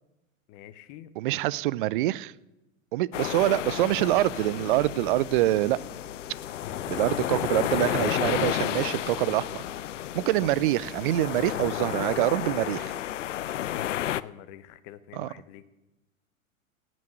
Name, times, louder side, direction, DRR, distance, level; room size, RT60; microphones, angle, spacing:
voice 1, 0.5-1.1 6.6-6.8 13.6-15.7, left 12 dB, 35° left, 13 dB, 1.1 m, -45 dB
voice 2, 1.2-2.3 2.9-5.8 6.9-9.6 10.1-12.9 15.1-15.3, right 16 dB, 40° right, 20 dB, 0.5 m, -25 dB
sound 1, 3.1-14.2, left 12 dB, 65° left, 0.6 m, -32 dB
sound 2, 4.5-11.3, left 7 dB, 15° left, 0.8 m, -46 dB
18.0 x 6.2 x 9.0 m, 0.98 s
figure-of-eight pair, 105°, 40 cm